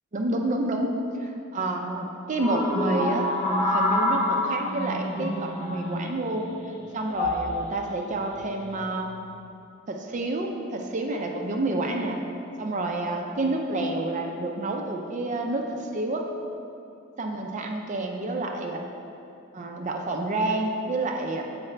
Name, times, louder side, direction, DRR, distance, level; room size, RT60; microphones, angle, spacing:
voice 1, 0.1-0.9 1.2-6.5 6.9-9.1 9.9-12.2 12.6-16.2 17.2-18.8 19.5-21.4, right 2 dB, 35° right, 2 dB, 0.4 m, -29 dB
sound 1, 2.4-6.2 7.1-7.5 8.4-8.7, left 1 dB, 30° left, 1.0 m, -27 dB
7.3 x 4.8 x 3.2 m, 2.6 s
head